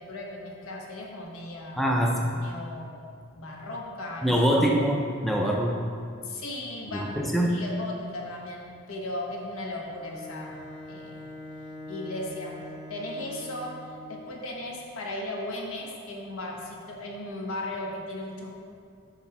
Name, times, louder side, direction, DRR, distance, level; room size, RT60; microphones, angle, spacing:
voice 1, 0.0-1.9 2.3-2.9 3.2-4.7 6.2-7.2 7.5-10.6 10.8-11.3 11.9-12.6 12.9-18.5, left 1 dB, 85° left, -1 dB, 1.2 m, -37 dB
voice 2, 1.8-2.2 4.2-5.8 6.9-7.6, equal, ahead, -1 dB, 0.4 m, -24 dB
Bowed string instrument, 9.9-14.1, left 1 dB, 35° left, 1.5 m, -43 dB
8.4 x 3.4 x 5.9 m, 2.3 s
head